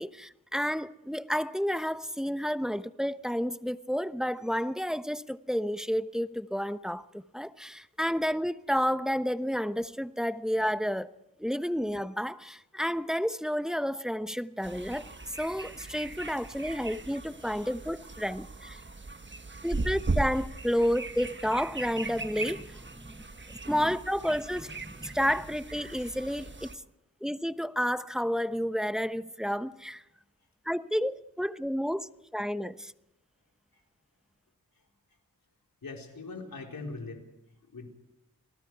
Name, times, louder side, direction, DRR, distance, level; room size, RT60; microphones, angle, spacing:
voice 1, 0.0-11.1 11.4-15.1 15.4-18.8 19.6-23.2 23.5-26.7 27.2-30.0 30.6-32.9, equal, ahead, 1.0 m, -31 dB
sound 1, 14.6-26.7, right 3 dB, 35° right, 1.4 m, -38 dB
voice 2, 35.8-37.2 37.6-37.9, left 3 dB, 80° left, 4.2 m, -41 dB
29.5 x 19.5 x 4.8 m
cardioid pair, 40°, 34 cm